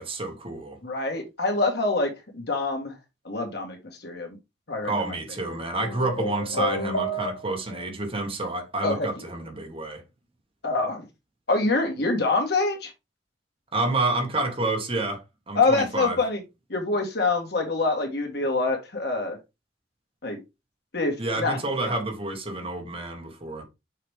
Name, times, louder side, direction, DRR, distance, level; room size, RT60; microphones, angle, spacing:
voice 1, 0.0-0.8 4.8-10.0 13.7-16.2 21.2-23.6, right 2 dB, 30° right, 1.9 m, -29 dB
voice 2, 0.8-3.0 3.2-4.4 4.7-5.1 8.8-9.2 10.6-11.0 11.5-12.9 15.5-16.4 16.7-19.4 20.2-20.4 20.9-21.9, left 3 dB, 65° left, 2.1 m, -26 dB
sound 1, 5.8-7.8, equal, 80° left, 1.0 m, -30 dB
6.5 x 5.0 x 3.7 m
head